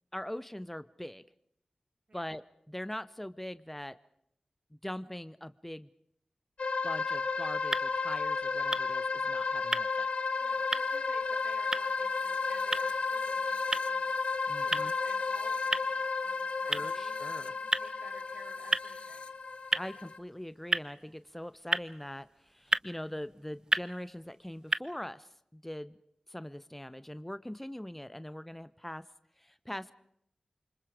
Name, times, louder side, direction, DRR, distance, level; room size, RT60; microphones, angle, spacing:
voice 1, 0.1-1.2 2.1-4.0 4.8-5.9 6.8-10.1 14.5-14.9 16.7-17.6 19.7-26.0 26.3-29.0 29.4-29.9, left 1 dB, 10° left, 14 dB, 0.9 m, -42 dB
sound 1, 6.6-20.2, left 4 dB, 70° left, 1.2 m, -33 dB
sound 2, 7.4-24.8, right 2 dB, 35° right, 1.0 m, -37 dB
voice 2, 10.4-19.3, right 2 dB, 65° right, 1 dB, 4.8 m, -55 dB
28.5 x 25.5 x 5.0 m, 0.73 s
wide cardioid pair, 55°, 2 cm